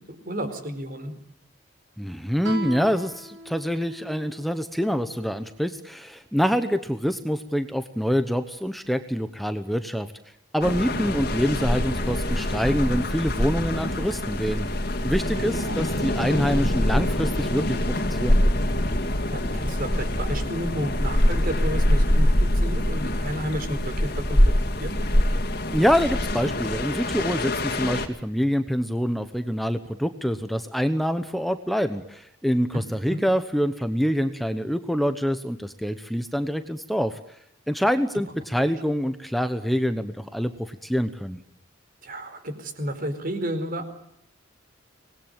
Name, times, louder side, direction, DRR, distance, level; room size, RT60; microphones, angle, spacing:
voice 1, 0.1-1.1 15.3-15.8 19.3-24.5 24.8-25.0 32.7-32.8 33.1-33.2 42.0-43.9, equal, 45° right, 8 dB, 4.5 m, -32 dB
voice 2, 2.0-10.1 10.5-14.7 15.0-17.6 18.1-18.4 25.7-37.2 37.7-41.4, equal, ahead, 9 dB, 1.0 m, -26 dB
Guitar, 2.4-5.7, right 2 dB, 80° right, 6.6 m, -39 dB
sound 1, 10.6-28.1, left 1 dB, 50° left, 2.6 m, -24 dB
25.5 x 20.5 x 9.0 m, 0.76 s
head